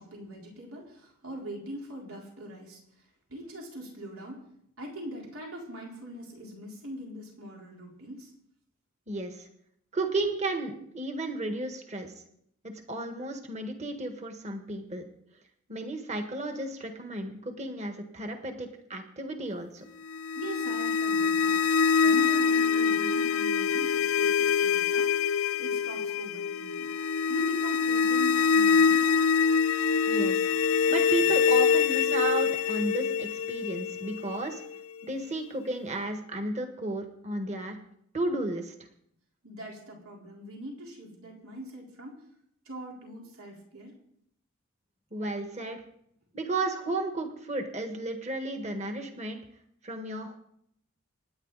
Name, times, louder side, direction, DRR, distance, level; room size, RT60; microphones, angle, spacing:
voice 1, 0.0-4.5 4.8-8.3 10.2-10.3 11.2-11.4 20.3-21.6 22.0-25.1 25.6-26.9 27.3-29.2 39.4-42.2 42.6-43.9, equal, 85° right, -2 dB, 4.1 m, -42 dB
voice 2, 9.1-9.5 9.9-12.1 12.6-15.0 15.7-19.8 30.1-30.4 30.9-34.6 35.0-37.8 38.1-38.7 45.1-45.8 46.3-49.4 49.8-50.4, right 2 dB, 30° right, 5 dB, 1.6 m, -33 dB
sound 1, 20.1-35.0, left 6 dB, 80° left, 0.7 m, -25 dB
27.0 x 10.0 x 4.1 m, 0.72 s
head